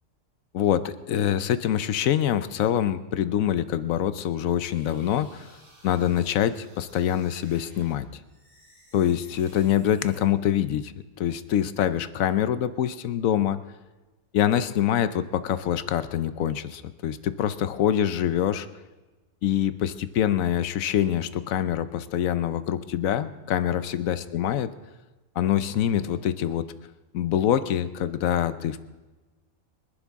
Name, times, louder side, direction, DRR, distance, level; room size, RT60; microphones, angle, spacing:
voice 1, 0.5-5.5 5.8-8.1 8.9-10.9 11.2-13.6 14.3-18.7 19.4-24.7 25.4-26.7 27.1-28.8, left 10 dB, 90° left, 13 dB, 1.1 m, -25 dB
sound 1, 4.7-7.9 8.2-10.2, equal, 75° right, 7.1 m, -56 dB
24.0 x 11.5 x 3.6 m, 1.2 s
omnidirectional pair, 1.4 m